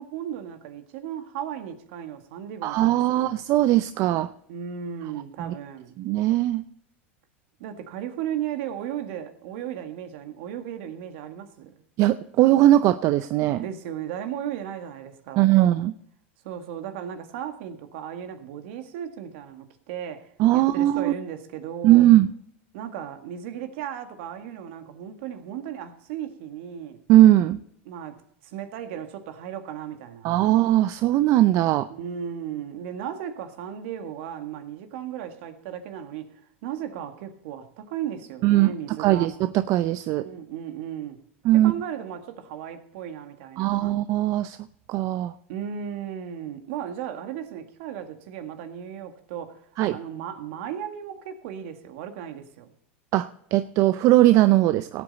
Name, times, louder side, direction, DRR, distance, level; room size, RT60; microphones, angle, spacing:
voice 1, 0.0-3.3 4.5-5.9 7.6-11.7 13.6-15.7 16.4-22.1 22.7-27.0 27.9-28.2 28.4-30.6 31.9-39.3 40.2-41.2 41.5-44.0 45.5-52.7, right 9 dB, 65° right, 1.7 m, -36 dB
voice 2, 2.6-4.3 5.4-5.5 6.0-6.6 12.0-13.6 15.4-15.9 20.4-21.1 21.8-22.3 27.1-27.6 30.2-31.9 38.4-38.7 39.0-40.2 41.4-41.7 43.6-44.6 44.9-45.3 49.8-49.9 53.1-55.0, right 14 dB, 50° right, 0.6 m, -19 dB
18.0 x 8.7 x 4.1 m
hypercardioid pair, 105°, 7 cm